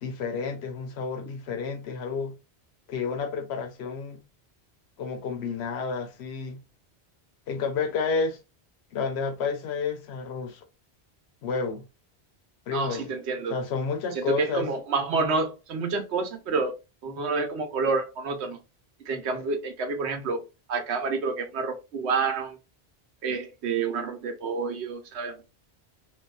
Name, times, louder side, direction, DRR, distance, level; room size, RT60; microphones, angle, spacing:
voice 1, 0.0-2.4 2.9-4.2 5.0-6.6 7.5-8.4 8.9-10.6 11.4-11.8 12.7-13.1 13.5-14.7, left 5 dB, 75° left, 0.9 m, -30 dB
voice 2, 12.7-13.6 14.1-16.7 17.0-18.6 19.0-20.4 20.7-22.6 23.2-25.4, right 4 dB, 85° right, 1.0 m, -28 dB
2.6 x 2.3 x 2.2 m
omnidirectional pair, 1.1 m